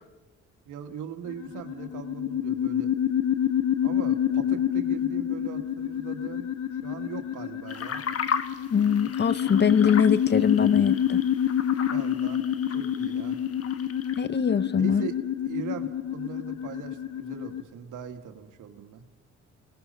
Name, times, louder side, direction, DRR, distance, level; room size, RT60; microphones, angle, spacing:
voice 1, 0.7-2.9 3.8-6.5 6.8-8.0 11.9-12.4 12.7-13.4 14.8-15.2 15.4-19.0, right 8 dB, 85° right, 6 dB, 1.9 m, -40 dB
sound 1, 1.3-17.6, left 10 dB, 75° left, 1.5 m, -28 dB
sound 2, 7.7-14.3, left 6 dB, 50° left, 1.3 m, -36 dB
voice 2, 8.7-11.2 14.2-15.0, left 7 dB, 35° left, 16 dB, 0.7 m, -22 dB
28.5 x 19.5 x 5.6 m, 1.3 s
cardioid pair, 90°, 30 cm